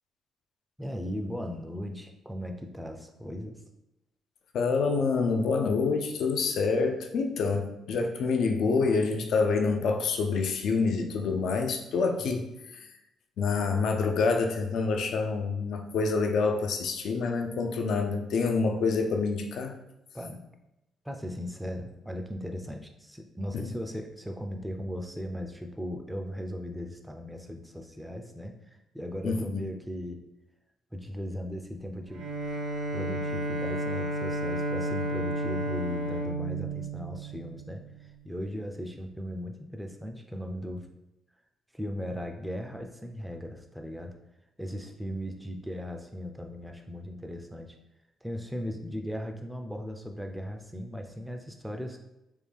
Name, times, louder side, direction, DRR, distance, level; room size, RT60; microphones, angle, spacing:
voice 1, 0.8-3.6 12.2-12.4 20.1-20.5 21.0-30.2 30.9-32.3 32.9-37.8 38.2-40.9 41.7-44.1 44.6-47.7 48.2-52.0, equal, 5° right, 3 dB, 0.4 m, -37 dB
voice 2, 4.5-12.5 12.7-12.9 13.4-19.7 23.5-23.7 29.2-29.6, left 4 dB, 70° left, 4 dB, 0.4 m, -27 dB
Bowed string instrument, 32.1-37.7, right 1 dB, 80° right, 0.6 m, -32 dB
3.5 x 2.3 x 3.3 m, 0.92 s
cardioid pair, 90°, 0 cm